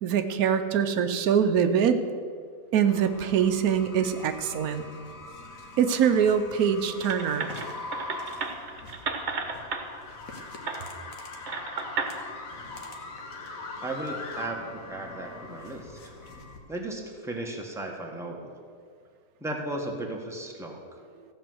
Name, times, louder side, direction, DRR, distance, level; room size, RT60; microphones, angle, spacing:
voice 1, 0.0-2.0 2.7-4.8 5.8-7.5, right 8 dB, 90° right, 9 dB, 1.2 m, -24 dB
sound 1, 2.8-16.6, left 3 dB, 70° left, 1.8 m, -42 dB
sound 2, 7.0-9.8 10.6-10.8 11.5-12.1, right 5 dB, 55° right, 1.3 m, -33 dB
voice 2, 13.8-16.1 16.7-18.5 19.4-21.0, right 1 dB, ahead, 0 dB, 1.2 m, -35 dB
14.5 x 5.5 x 7.7 m, 2.1 s
omnidirectional pair, 1.5 m